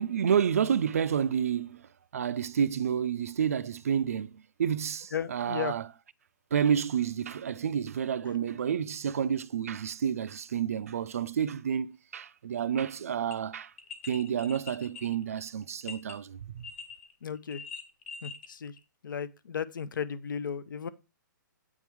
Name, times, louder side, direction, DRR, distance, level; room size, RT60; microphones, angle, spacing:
voice 1, 0.0-5.9 6.5-13.7 14.1-16.7, right 8 dB, 45° right, 0.3 m, -30 dB
voice 2, 5.1-5.7 17.2-17.6 18.2-18.7 19.0-20.9, left 7 dB, 75° left, 0.6 m, -35 dB
sound 1, 12.6-12.7 13.3-13.4 13.8-16.1 16.6-17.1 17.4-18.5 18.8-18.9, left 5 dB, 35° left, 0.8 m, -43 dB
8.4 x 3.6 x 4.5 m
hypercardioid pair, 180°, 11 cm